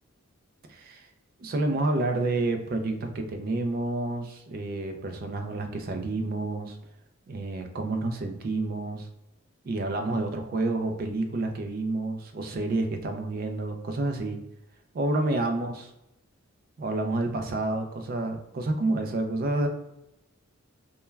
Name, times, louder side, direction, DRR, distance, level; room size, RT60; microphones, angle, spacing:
voice 1, 0.7-1.1 1.4-6.8 7.3-9.1 9.6-14.4 14.9-15.9 16.8-19.7, right 2 dB, 45° right, 5 dB, 0.3 m, -29 dB
2.2 x 2.2 x 3.1 m, 0.87 s
head